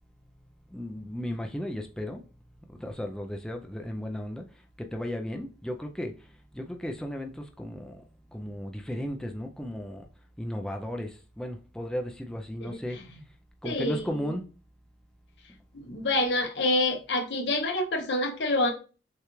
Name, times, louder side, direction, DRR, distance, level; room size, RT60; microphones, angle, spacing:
voice 1, 0.7-2.2 2.7-4.5 4.8-8.0 8.3-10.1 10.4-13.0 13.6-14.5, equal, 5° left, 0.4 m, -35 dB
voice 2, 13.6-14.0 15.9-18.7, left 2 dB, 70° left, 0.9 m, -27 dB
6.4 x 2.3 x 3.0 m
head